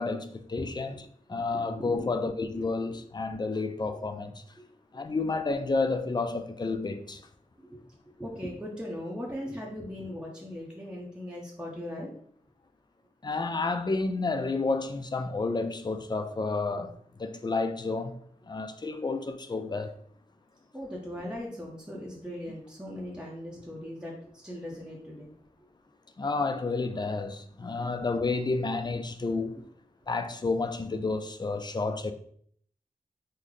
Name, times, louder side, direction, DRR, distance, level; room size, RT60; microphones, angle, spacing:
voice 1, 0.0-4.4 4.9-7.2 13.2-16.9 17.2-18.2 18.5-19.9 26.2-29.6 30.1-32.1, left 3 dB, 30° left, 0.4 m, -30 dB
voice 2, 8.2-12.1 20.7-25.3 27.6-27.9 29.2-29.3, equal, 5° right, 0.7 m, -39 dB
3.2 x 2.1 x 3.8 m
wide cardioid pair, 45°, 14 cm